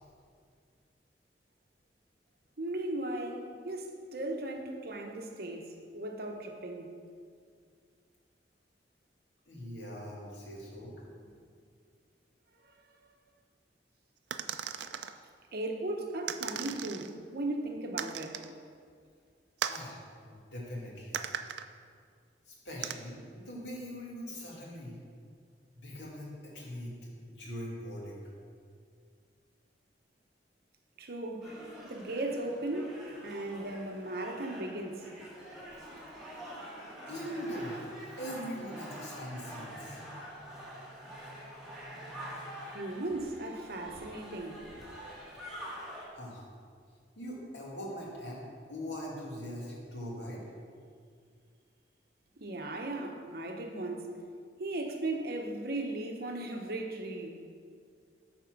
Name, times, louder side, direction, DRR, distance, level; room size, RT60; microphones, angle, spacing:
voice 1, 2.6-6.9 12.6-12.8 15.5-18.4 31.0-31.5 31.8-35.1 42.7-44.6 52.4-54.1 54.6-57.4, right 2 dB, 60° right, 3 dB, 0.9 m, -37 dB
voice 2, 9.5-11.0 19.7-21.2 22.5-25.0 25.8-27.0 27.2-28.3 37.1-37.8 38.2-40.0 46.1-46.4 47.2-48.4 48.7-50.4, equal, 90° left, -4 dB, 2.1 m, -41 dB
sound 1, 14.3-15.1 16.3-17.1 18.0-18.5 19.6-19.9 21.1-21.7 22.8-22.9, right 9 dB, 80° right, 0.4 m, -37 dB
sound 2, 31.4-46.1, equal, ahead, 2.0 m, -46 dB
9.0 x 4.3 x 6.0 m, 2.1 s
head